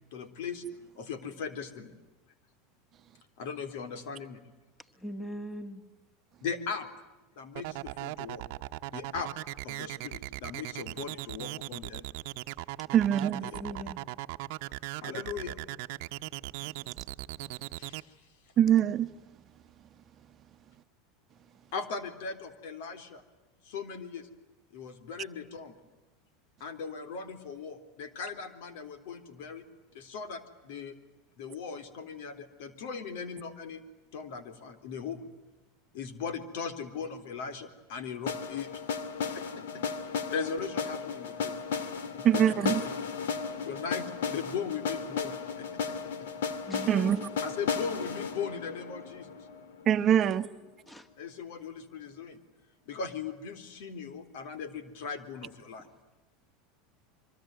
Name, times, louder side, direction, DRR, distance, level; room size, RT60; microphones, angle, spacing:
voice 1, 0.1-0.6 1.0-1.9 3.4-4.4 6.4-6.9 7.4-8.4 8.9-9.3 9.6-12.0 13.4-13.7 15.0-15.6 17.8-18.2 21.7-23.2 23.6-24.3 24.7-25.8 26.6-29.6 29.9-31.0 31.4-33.8 34.1-35.3 35.9-38.8 39.3-41.6 42.2-42.4 43.6-46.0 47.4-49.4 51.2-52.4 52.9-55.9, left 6 dB, 70° left, 3.8 m, -39 dB
voice 2, 5.0-5.8 13.1-14.0 46.6-47.4 50.0-51.1 55.8-55.9, equal, 10° left, 2.4 m, -41 dB
sound 1, 7.6-18.0, right 19 dB, 65° right, 0.9 m, -38 dB
voice 3, 12.9-13.4 18.6-19.1 42.2-42.8 46.9-47.2 49.9-50.5, right 10 dB, 35° right, 1.0 m, -23 dB
sound 2, 38.3-50.2, left 5 dB, 90° left, 2.6 m, -35 dB
26.0 x 24.5 x 9.3 m
supercardioid pair, 120°, 0 cm